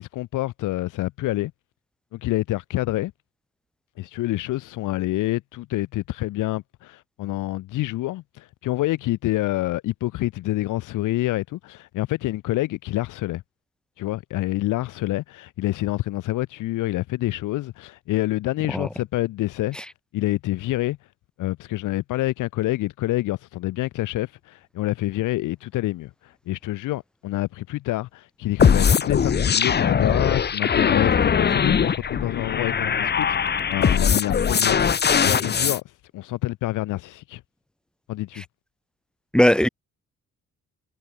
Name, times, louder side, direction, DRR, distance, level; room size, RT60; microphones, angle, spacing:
voice 1, 0.0-1.5 2.1-3.1 4.0-13.4 14.0-19.8 20.1-21.0 21.4-35.8 36.1-37.4 38.1-38.4, left 17 dB, 85° left, 1.3 m, -27 dB
sound 1, 28.6-35.8, left 7 dB, 35° left, 0.9 m, -21 dB
voice 2, 39.3-39.7, left 1 dB, 5° left, 2.5 m, -19 dB
cardioid pair, 90°, 30 cm